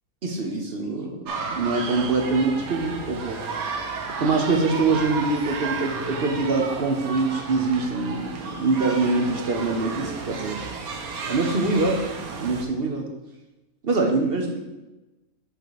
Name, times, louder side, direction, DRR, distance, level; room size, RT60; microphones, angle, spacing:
voice 1, 0.2-3.4 4.2-10.6 11.3-12.0 12.4-13.1 13.8-14.6, right 3 dB, 50° right, 1 dB, 0.9 m, -24 dB
sound 1, 1.3-12.6, right 4 dB, 85° right, 1.3 m, -33 dB
6.6 x 4.0 x 4.8 m, 1.1 s
omnidirectional pair, 1.5 m